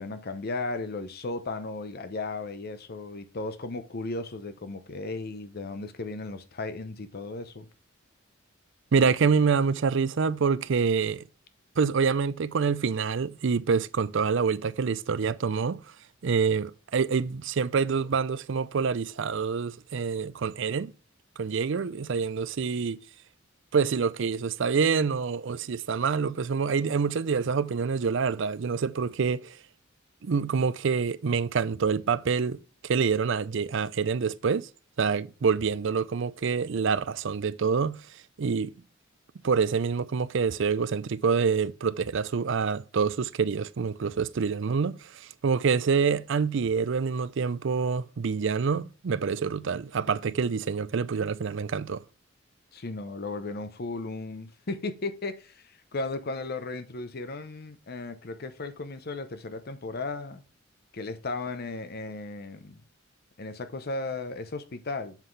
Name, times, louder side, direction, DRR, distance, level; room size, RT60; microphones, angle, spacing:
voice 1, 0.0-7.7 52.7-60.4 60.9-62.8 63.4-65.2, left 3 dB, 50° left, 0.7 m, -35 dB
voice 2, 8.9-11.2 11.8-15.8 16.2-20.9 21.4-23.0 23.7-29.6 30.2-32.6 32.8-34.7 35.0-38.0 38.4-38.7 39.4-52.0, right 5 dB, 70° right, 0.5 m, -26 dB
7.4 x 5.7 x 3.2 m
head